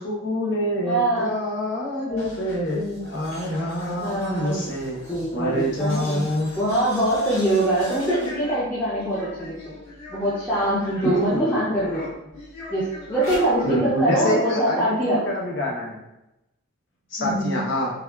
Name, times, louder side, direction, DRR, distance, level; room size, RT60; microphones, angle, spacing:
voice 1, 0.0-2.8 3.1-5.0 5.3-6.5 11.1-11.6 13.6-16.0 17.1-17.9, equal, 55° left, -3 dB, 0.7 m, -26 dB
voice 2, 0.9-1.4 2.1-2.3 2.7-3.0 4.0-4.7 5.0-6.2 6.6-9.7 10.1-12.3 12.7-15.2 17.2-17.7, right 1 dB, 10° left, -10 dB, 0.4 m, -24 dB
sound 1, 2.1-11.4 11.7-13.9, equal, 70° left, 1.4 m, -40 dB
3.4 x 2.2 x 2.3 m, 0.92 s
head